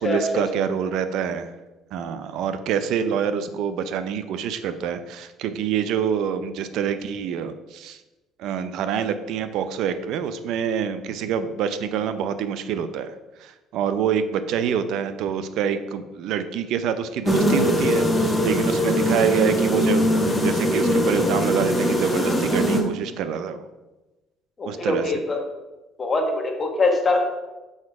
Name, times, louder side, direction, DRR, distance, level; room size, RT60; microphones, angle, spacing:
voice 1, 0.0-1.5 1.9-8.0 8.4-13.1 13.4-20.2 20.4-23.7 24.6-25.2, right 8 dB, 70° right, 11 dB, 0.5 m, -26 dB
sound 1, 17.2-22.8, equal, 10° left, 1.3 m, -21 dB
voice 2, 24.6-25.4 26.0-27.2, left 3 dB, 30° left, 2 dB, 1.4 m, -23 dB
6.5 x 4.9 x 4.7 m, 1.1 s
cardioid pair, 105°, 0 cm